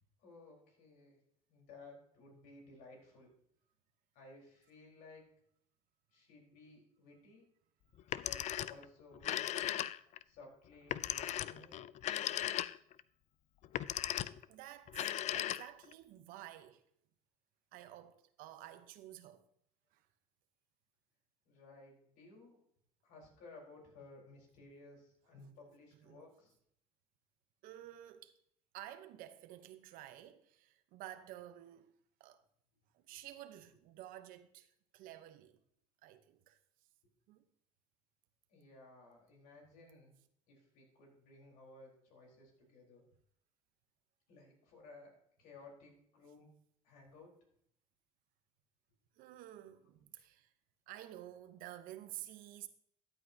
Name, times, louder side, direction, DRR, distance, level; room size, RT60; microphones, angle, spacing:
voice 1, 0.2-1.2 1.5-3.3 4.1-5.3 6.1-7.5 8.2-9.5 10.2-11.8 21.5-22.6 23.0-26.6 38.5-40.2 40.5-43.0 44.3-46.5 46.8-47.4, left 3 dB, 75° left, 4.3 m, -57 dB
Telephone, 8.0-8.8 9.1-10.2 10.9-13.0 13.6-14.4 14.9-15.9, left 12 dB, 50° left, 0.4 m, -37 dB
voice 2, 14.5-16.8 17.7-19.4 19.9-20.0 26.0-26.2 27.6-28.4 28.7-31.9 32.2-32.4 32.9-35.6 36.0-36.6 37.3-37.4 49.2-50.5 50.9-52.7, right 13 dB, 75° right, 0.9 m, -51 dB
13.5 x 8.3 x 2.8 m
supercardioid pair, 100°, 15 cm